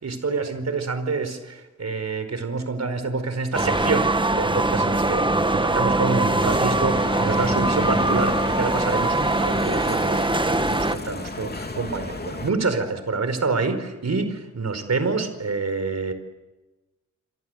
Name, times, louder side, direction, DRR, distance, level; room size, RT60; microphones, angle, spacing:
voice 1, 0.0-16.1, right 4 dB, 60° right, 10 dB, 4.8 m, -27 dB
sound 1, 3.5-11.0, right 2 dB, 15° right, 1.4 m, -22 dB
Bicycle, 6.4-12.5, left 2 dB, 35° left, 3.0 m, -33 dB
29.5 x 23.0 x 8.1 m, 1.1 s
cardioid pair, 60°, 30 cm